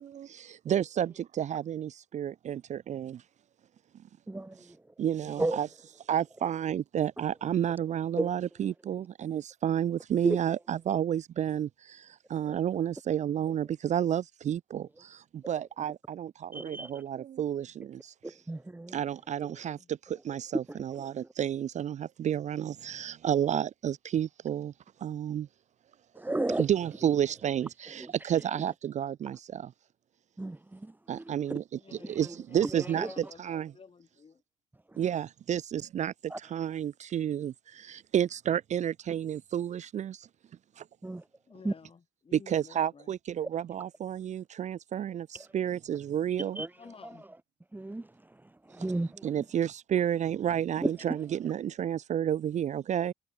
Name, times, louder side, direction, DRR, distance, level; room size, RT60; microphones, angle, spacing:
voice 1, 0.2-3.2 5.0-5.7 6.1-18.1 18.9-24.7 25.0-25.5 26.6-29.7 31.1-31.6 32.1-33.7 35.0-40.3 40.8-40.9 42.3-46.6 49.2-53.1, right 10 dB, 50° right, 0.6 m, -31 dB
voice 2, 4.3-4.8 5.4-5.6 8.2-8.3 10.2-10.4 12.4-12.6 16.5-17.0 18.2-19.0 19.4-19.5 20.7-21.1 26.1-26.7 28.0-28.1 29.3-29.4 30.4-31.6 32.0-32.3 32.6-33.1 36.3-36.4 41.0-41.2 41.6-41.7 46.4-46.7 47.0-47.2 47.7-48.1 48.7-49.3 50.8-50.9, right 2 dB, 10° right, 1.3 m, -34 dB
voice 3, 5.2-5.7 19.7-19.9 31.8-32.1 32.5-34.4 41.5-43.1 46.8-47.2, left 5 dB, 35° left, 4.4 m, -53 dB
supercardioid pair, 65°, 16 cm